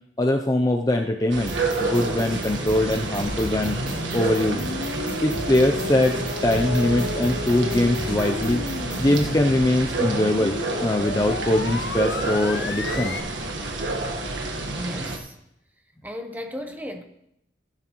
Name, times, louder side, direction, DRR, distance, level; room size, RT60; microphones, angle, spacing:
voice 1, 0.2-1.5 1.8-3.8 4.1-4.7 5.2-8.6 9.0-13.2, left 1 dB, 20° left, 4 dB, 0.4 m, -22 dB
sound 1, 1.3-15.2, right 2 dB, 80° right, 1.4 m, -29 dB
sound 2, 1.5-9.3, right 1 dB, 30° right, 3.6 m, -35 dB
sound 3, 3.2-13.2, left 3 dB, 60° left, 0.7 m, -34 dB
voice 2, 14.7-15.4 16.0-17.0, left 1 dB, 10° right, 5 dB, 0.9 m, -35 dB
15.0 x 10.5 x 3.0 m, 0.78 s
head